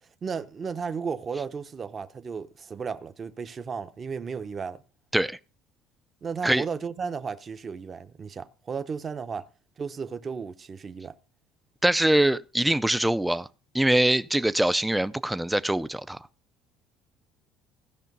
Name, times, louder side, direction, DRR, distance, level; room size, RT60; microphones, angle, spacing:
voice 1, 0.2-4.8 6.2-9.4 9.8-11.1, right 5 dB, 25° right, 0.8 m, -34 dB
voice 2, 11.8-13.5 13.7-16.2, right 1 dB, 5° right, 0.5 m, -23 dB
16.5 x 5.7 x 5.4 m
cardioid pair, 140°, 0 cm